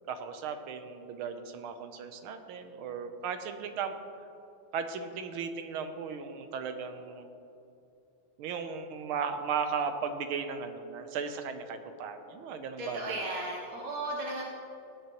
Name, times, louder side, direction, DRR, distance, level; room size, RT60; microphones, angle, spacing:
voice 1, 0.1-4.0 4.7-7.3 8.4-13.2, right 6 dB, 85° right, 8 dB, 1.6 m, -36 dB
voice 2, 12.8-14.4, right 2 dB, 55° right, -2 dB, 1.1 m, -35 dB
17.0 x 10.0 x 3.0 m, 2.7 s
omnidirectional pair, 2.3 m